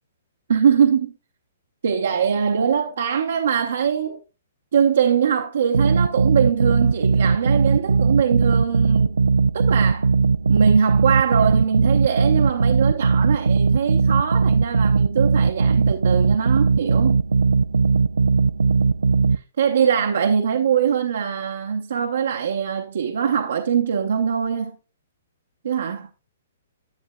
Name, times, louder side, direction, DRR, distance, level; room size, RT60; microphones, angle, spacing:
voice 1, 0.5-1.1 1.8-4.2 4.7-9.1 9.5-10.1 10.5-17.2 19.3-24.8 25.6-26.1, right 7 dB, 70° right, 0.8 m, -22 dB
sound 1, 5.7-19.4, right 4 dB, 90° right, 0.3 m, -19 dB
10.5 x 7.2 x 2.2 m
hypercardioid pair, 130°, 0 cm